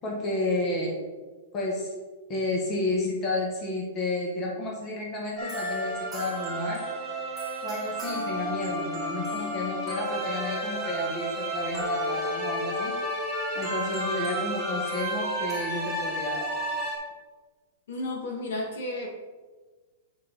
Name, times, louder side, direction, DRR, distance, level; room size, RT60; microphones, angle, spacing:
voice 1, 0.0-0.9 1.5-1.9 2.3-6.9 7.6-12.9 13.5-16.5, left 2 dB, 25° left, -2 dB, 1.6 m, -31 dB
sound 1, 5.4-17.0, right 1 dB, ahead, 2.2 m, -31 dB
voice 2, 17.9-19.1, left 1 dB, 70° left, -1 dB, 2.4 m, -32 dB
8.5 x 5.3 x 4.1 m, 1.4 s
hypercardioid pair, 160°, 0 cm